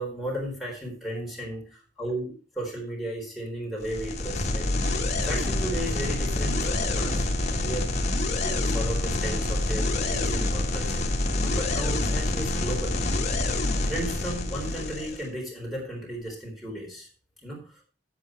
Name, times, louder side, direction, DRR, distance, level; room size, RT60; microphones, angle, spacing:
voice 1, 0.0-1.6 2.0-4.7 5.2-7.9 8.4-11.0 11.3-13.0 13.4-13.6 13.9-17.1 17.4-17.8, right 1 dB, ahead, -2 dB, 4.1 m, -35 dB
sound 1, 3.8-15.3, left 2 dB, 40° left, 1.7 m, -27 dB
9.3 x 8.5 x 4.6 m, 0.37 s
head